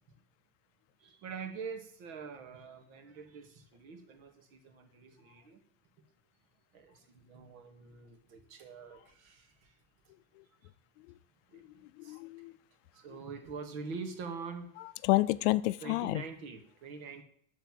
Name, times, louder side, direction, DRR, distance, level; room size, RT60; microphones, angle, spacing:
voice 1, 1.0-5.6 6.7-9.7 11.5-12.2 12.9-14.7 15.8-17.2, right 5 dB, 70° right, 5 dB, 2.3 m, -45 dB
voice 2, 12.0-12.5 14.8-16.2, left 19 dB, 55° left, 15 dB, 0.5 m, -30 dB
12.0 x 4.5 x 7.6 m, 0.68 s
cardioid pair, 175°, 44 cm